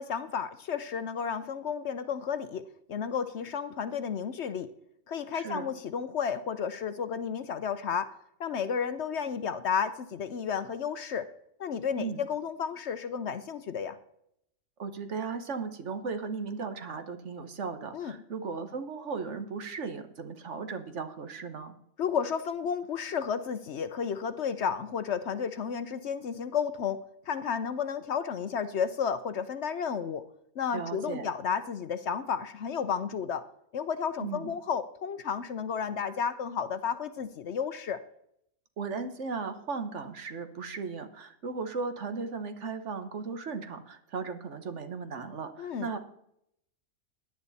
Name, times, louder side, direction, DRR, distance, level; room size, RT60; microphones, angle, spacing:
voice 1, 0.0-2.6 2.9-4.7 5.1-8.1 8.4-11.3 11.6-14.0 17.9-18.2 22.0-27.0 27.3-30.2 30.6-33.4 33.7-38.0 45.6-45.9, left 7 dB, 60° left, 12 dB, 0.9 m, -32 dB
voice 2, 5.3-5.7 12.0-12.2 14.8-21.7 30.7-31.3 34.2-34.6 38.8-46.0, right 4 dB, 60° right, 9 dB, 1.4 m, -36 dB
17.0 x 11.0 x 4.1 m, 0.75 s
omnidirectional pair, 1.4 m